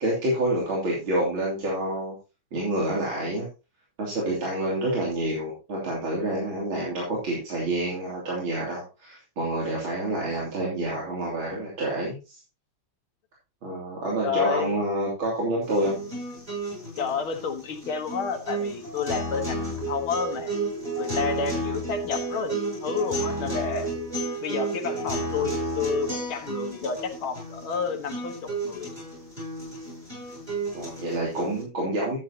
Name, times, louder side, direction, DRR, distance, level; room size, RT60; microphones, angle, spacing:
voice 1, 0.0-2.2 2.5-3.5 4.0-12.4 13.6-16.0 24.9-25.1 30.7-32.2, right 1 dB, 80° right, -4 dB, 3.8 m, -28 dB
voice 2, 14.2-14.8 17.0-20.5 21.0-23.9 24.4-28.9, left 5 dB, 90° left, 4 dB, 2.2 m, -30 dB
sound 1, 15.6-31.6, right 2 dB, 25° right, 8.2 m, -32 dB
12.5 x 9.3 x 2.9 m, 0.30 s
omnidirectional pair, 2.2 m